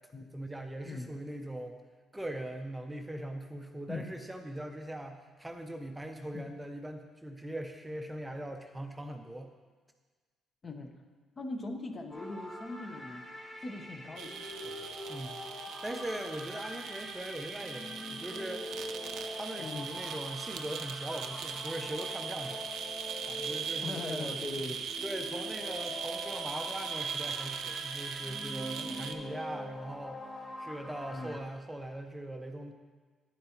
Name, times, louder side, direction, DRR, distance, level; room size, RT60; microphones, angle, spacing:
voice 1, 0.3-1.8 2.1-9.5 15.1-15.5 15.8-18.7 19.3-22.6 23.3-24.5 25.0-32.7, right 1 dB, 10° right, 4 dB, 0.6 m, -41 dB
voice 2, 10.6-11.0 11.4-13.3 13.6-15.0 19.6-19.9 23.8-24.8 28.9-29.0 31.1-31.4, left 2 dB, 35° left, 5 dB, 0.8 m, -40 dB
sound 1, 12.1-31.4, left 1 dB, 15° left, 1.8 m, -44 dB
sound 2, 14.2-29.1, right 6 dB, 70° right, 0.6 m, -40 dB
9.7 x 9.2 x 2.9 m, 1.4 s
cardioid pair, 100°, 0 cm